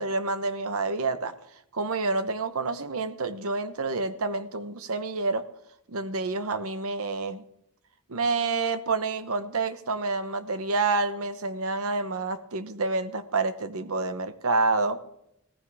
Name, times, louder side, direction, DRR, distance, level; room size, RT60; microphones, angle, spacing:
voice 1, 0.0-1.3 1.7-5.4 5.9-7.4 8.1-15.0, right 3 dB, 70° right, 11 dB, 1.0 m, -28 dB
16.5 x 14.5 x 3.5 m, 0.77 s
head